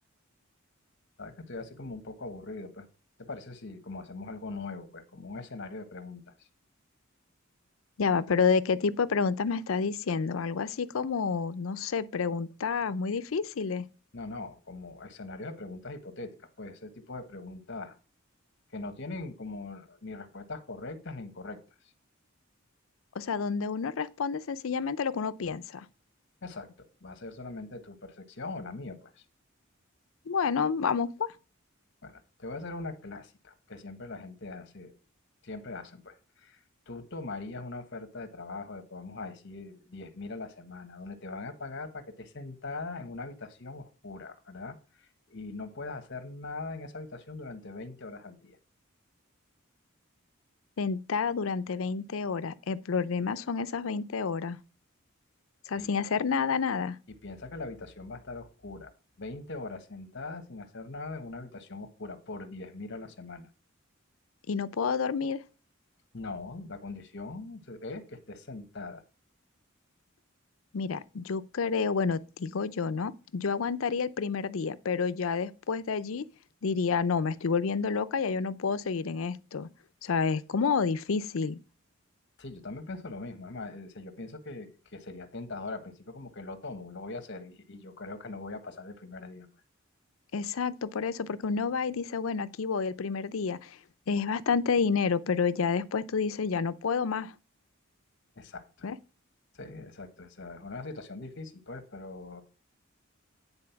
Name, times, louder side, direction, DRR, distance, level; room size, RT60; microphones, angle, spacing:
voice 1, 1.2-2.9 3.2-6.5 14.1-18.0 18.7-21.6 26.4-26.7 27.0-29.2 32.0-35.0 35.4-48.6 55.8-55.9 57.2-58.9 59.2-63.5 66.1-69.0 82.4-89.5 98.4-98.9 99.5-102.4, left 3 dB, 60° left, 1.3 m, -41 dB
voice 2, 8.0-13.8 23.2-25.9 30.3-31.3 50.8-54.6 55.7-57.0 64.5-65.4 70.7-76.3 76.6-79.7 80.0-81.6 90.3-93.8 94.1-97.3 98.8-99.0, left 5 dB, 75° left, 0.5 m, -29 dB
9.8 x 4.1 x 5.8 m
head